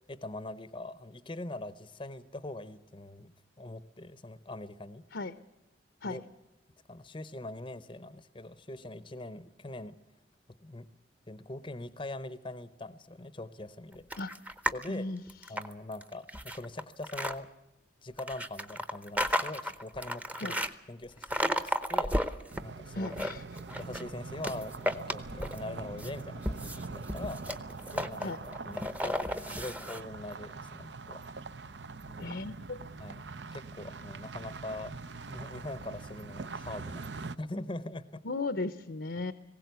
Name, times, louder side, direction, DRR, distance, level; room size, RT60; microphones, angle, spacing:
voice 1, 0.1-3.3 3.6-5.1 6.0-6.2 6.9-10.0 10.6-10.9 11.3-14.1 14.7-15.1 15.5-17.5 18.0-20.5 20.9-23.1 23.8-27.5 27.9-28.3 28.7-31.2 32.1-32.4 33.0-33.2 33.5-35.0 35.3-37.1 37.4-38.2, left 2 dB, 25° left, 15 dB, 0.7 m, -42 dB
sound 1, 14.1-14.9 15.3-17.3 18.2-20.7 21.2-22.6 23.0-24.1 24.4-25.7 26.0-30.0, equal, 10° right, 0.8 m, -33 dB
voice 2, 14.9-15.6 20.4-20.5 22.9-23.4 28.2-28.4 32.2-32.8 38.2-39.3, left 3 dB, 70° left, 13 dB, 0.8 m, -36 dB
sound 2, 22.5-37.4, right 4 dB, 70° right, 0.7 m, -43 dB
20.0 x 17.0 x 8.1 m, 0.98 s
head